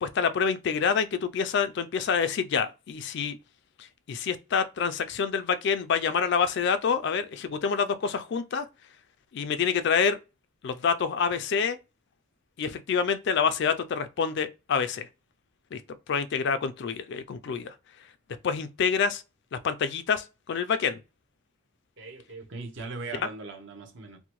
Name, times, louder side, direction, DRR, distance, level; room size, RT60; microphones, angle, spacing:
voice 1, 0.0-3.4 4.1-8.7 9.3-10.2 10.6-11.8 12.6-15.1 15.7-15.8 16.1-17.7 18.4-19.2 19.5-21.0 23.2-23.3, left 6 dB, 55° left, 0.3 m, -27 dB
voice 2, 22.0-24.2, right 3 dB, 55° right, 0.7 m, -39 dB
2.6 x 2.1 x 2.9 m
head